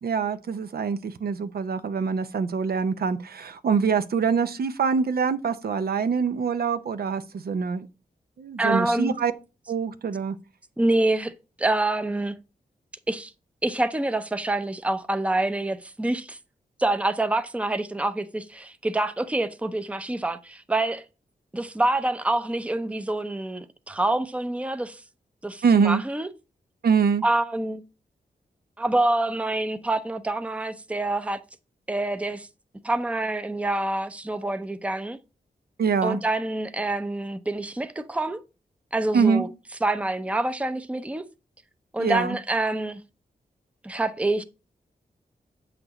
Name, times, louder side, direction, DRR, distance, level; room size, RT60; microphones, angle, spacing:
voice 1, 0.0-7.9 8.4-9.3 9.7-10.4 25.6-26.0 26.8-27.2 35.8-36.2 39.1-39.4 42.0-42.4, right 6 dB, 70° right, 0.6 m, -24 dB
voice 2, 8.6-9.2 10.8-11.3 11.6-12.3 13.1-13.3 13.6-16.4 16.8-21.0 21.5-25.0 25.4-26.3 27.2-27.8 28.8-31.4 31.9-32.5 32.8-35.2 36.0-38.4 38.9-39.5 39.8-41.2 41.9-43.0 43.8-44.4, right 2 dB, 10° right, 0.6 m, -26 dB
7.7 x 6.0 x 2.9 m
wide cardioid pair, 80°, 16 cm